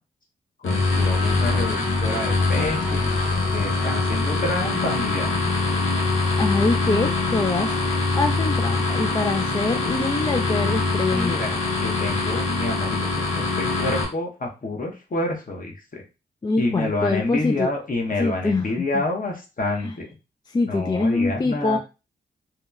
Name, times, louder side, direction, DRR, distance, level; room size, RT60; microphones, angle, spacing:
sound 1, 0.6-14.0, left 3 dB, 80° left, 0.8 m, -23 dB
voice 1, 0.6-5.4 11.0-16.0 16.6-20.1 20.7-21.8, left 2 dB, 40° left, 1 dB, 0.9 m, -28 dB
voice 2, 6.4-7.8 8.1-11.6 16.4-17.7 18.2-18.7 18.9-19.0 19.8-19.9 20.5-21.8, left 3 dB, 20° left, 4 dB, 0.3 m, -24 dB
2.8 x 2.1 x 2.3 m, 0.30 s
supercardioid pair, 40°, 20 cm